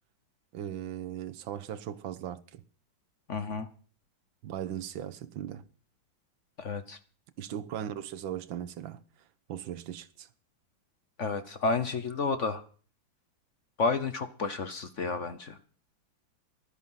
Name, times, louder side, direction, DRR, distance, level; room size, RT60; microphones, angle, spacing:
voice 1, 0.5-2.6 4.4-5.6 7.4-9.0 9.5-10.3, right 10 dB, 85° right, 1.7 m, -38 dB
voice 2, 3.3-3.7 6.6-7.0 11.2-12.6 13.8-15.6, left 4 dB, 50° left, 1.1 m, -31 dB
15.5 x 12.5 x 5.7 m
omnidirectional pair, 2.1 m